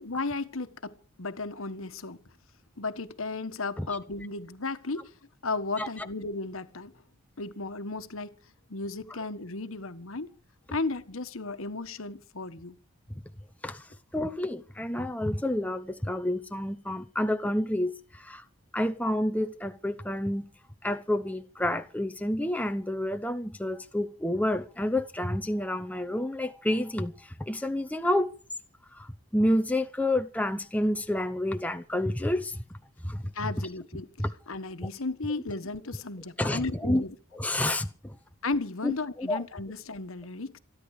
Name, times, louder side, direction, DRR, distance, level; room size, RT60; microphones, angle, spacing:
voice 1, 0.1-0.9 1.2-2.2 2.8-5.0 5.4-6.9 7.4-8.3 8.7-10.3 10.7-12.8 33.3-34.1 34.5-37.2 38.4-40.6, left 3 dB, 75° left, 1.4 m, -34 dB
voice 2, 14.1-17.9 18.2-18.4 18.7-20.5 20.8-27.1 27.5-28.3 29.3-32.6 33.0-33.2 34.2-34.3 36.4-37.0 37.3-37.9 38.8-39.4, left 1 dB, 5° left, 0.8 m, -29 dB
27.0 x 10.5 x 4.9 m
head